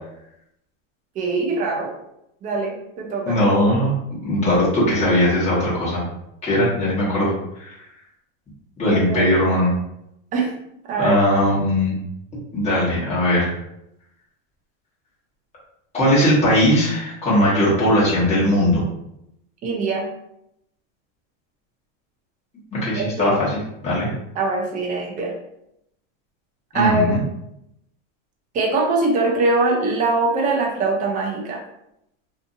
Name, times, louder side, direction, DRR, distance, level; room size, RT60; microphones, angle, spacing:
voice 1, 1.2-1.9 2.4-3.4 8.8-9.3 10.3-10.5 10.9-11.2 19.6-20.1 23.0-23.5 24.4-25.3 26.7-27.2 28.5-31.6, right 3 dB, 20° right, 0 dB, 0.5 m, -22 dB
voice 2, 3.3-6.0 6.4-7.3 7.6-7.7 8.8-9.7 11.0-11.9 12.5-13.5 15.9-18.8 22.7-24.1 26.7-27.2, left 1 dB, 15° left, -8 dB, 1.2 m, -19 dB
2.7 x 2.5 x 2.6 m, 0.81 s
supercardioid pair, 145°, 39 cm